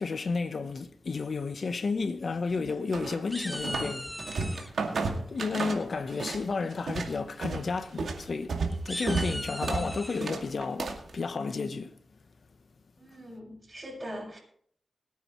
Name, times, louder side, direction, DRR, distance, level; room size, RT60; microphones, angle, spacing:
voice 1, 0.0-4.1 4.5-4.8 5.3-8.6 8.8-12.0, left 4 dB, 65° left, 0.9 m, -32 dB
sound 1, 2.3-2.9 3.3-4.7 6.1-6.5 6.9-7.2 7.5-7.6 8.0-8.1 8.7-10.3, equal, 5° left, 0.7 m, -39 dB
sound 2, 2.9-3.9 4.2-6.4 6.7-11.1, right 4 dB, 80° right, 2.2 m, -32 dB
voice 2, 13.0-14.4, equal, 30° right, 5.3 m, -42 dB
22.0 x 9.3 x 3.1 m
cardioid pair, 60°, 0 cm